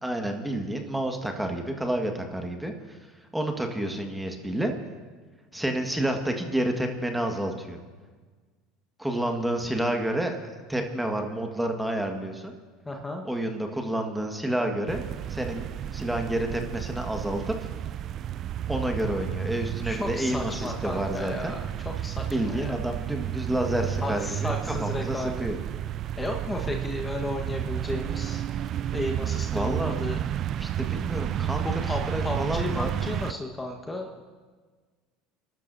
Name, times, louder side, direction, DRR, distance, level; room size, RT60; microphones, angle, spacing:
voice 1, 0.0-3.0 3.3-4.7 5.5-7.8 9.0-12.5 13.2-15.0 15.3-17.6 18.7-21.5 22.3-24.5 24.8-25.6 29.5-30.0 30.6-32.9, right 1 dB, 5° right, 3 dB, 1.7 m, -29 dB
voice 2, 12.8-13.2 19.8-21.7 22.0-22.7 24.0-25.4 26.2-28.5 28.9-30.2 31.6-34.2, left 2 dB, 15° left, 2 dB, 1.4 m, -33 dB
sound 1, 14.9-33.3, right 10 dB, 50° right, 0.4 m, -32 dB
28.5 x 12.5 x 2.8 m, 1.4 s
hypercardioid pair, 85°, 0 cm